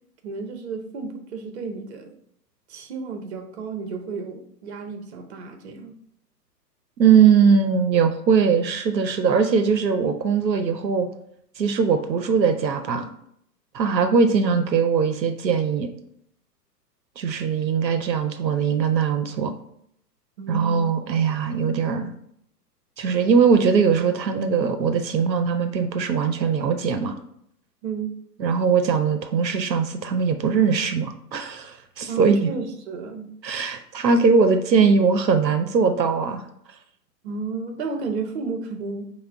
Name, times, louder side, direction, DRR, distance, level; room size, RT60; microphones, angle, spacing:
voice 1, 0.2-2.2 2.7-5.9 20.4-20.9 27.8-28.2 32.1-33.3 37.2-39.0, right 4 dB, 40° right, 5 dB, 0.7 m, -32 dB
voice 2, 7.0-11.1 11.6-13.1 13.7-15.9 17.2-19.5 20.5-22.1 23.0-27.2 28.4-32.5 33.4-36.4, right 6 dB, 85° right, 8 dB, 0.6 m, -20 dB
5.5 x 2.2 x 3.5 m, 0.71 s
figure-of-eight pair, 115°, 50 cm